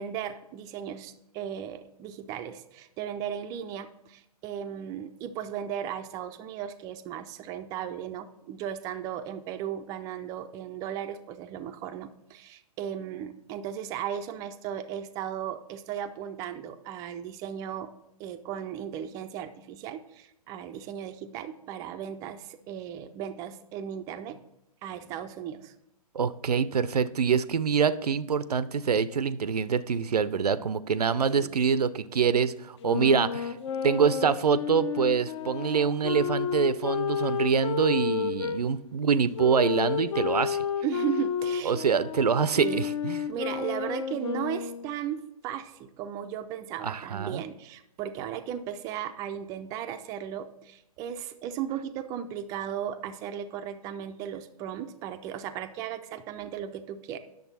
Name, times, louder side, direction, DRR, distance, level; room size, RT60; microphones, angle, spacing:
voice 1, 0.0-17.9 18.2-24.4 24.8-25.7 31.4-31.6 40.8-41.8 42.6-42.8 43.3-57.2, right 9 dB, 15° right, 9 dB, 0.4 m, -36 dB
voice 2, 26.1-33.6 33.8-40.6 41.6-43.2 46.8-47.4, right 6 dB, 75° right, 17 dB, 0.5 m, -25 dB
sound 1, 32.8-38.6 39.3-45.0, left 7 dB, 45° left, 0.7 m, -31 dB
9.5 x 6.7 x 4.1 m, 0.83 s
figure-of-eight pair, 120°, 20 cm